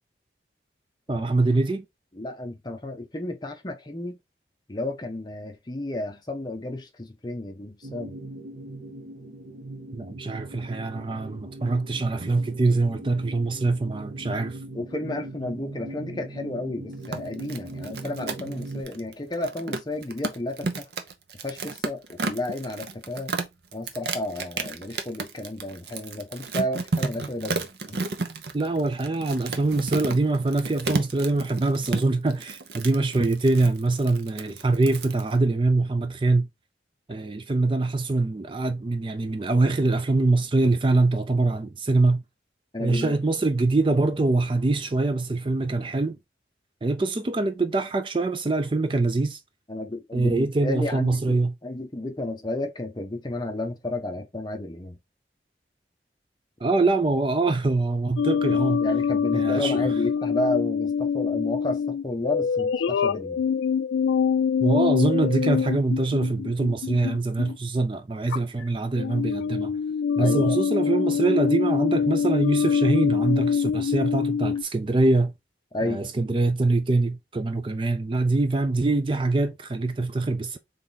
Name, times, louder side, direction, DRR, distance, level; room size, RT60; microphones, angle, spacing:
voice 1, 1.1-1.8 9.9-14.6 28.5-36.5 37.1-42.2 42.8-46.2 46.8-49.4 50.1-51.5 56.6-58.8 59.3-59.9 64.6-69.8 70.2-75.3 75.8-80.6, right 2 dB, 30° right, 0.4 m, -24 dB
voice 2, 2.1-4.2 4.7-8.1 14.7-20.9 21.4-23.3 23.7-28.0 42.7-43.2 49.7-55.0 58.8-63.4 70.2-70.6 75.7-76.0, left 1 dB, 25° left, 0.7 m, -32 dB
sound 1, 7.8-18.8, right 2 dB, 45° right, 1.1 m, -40 dB
sound 2, 16.9-35.3, right 3 dB, 65° right, 0.7 m, -32 dB
sound 3, 58.2-67.6 68.3-68.6 69.0-74.6, left 6 dB, 90° left, 0.3 m, -24 dB
3.6 x 3.4 x 3.9 m
head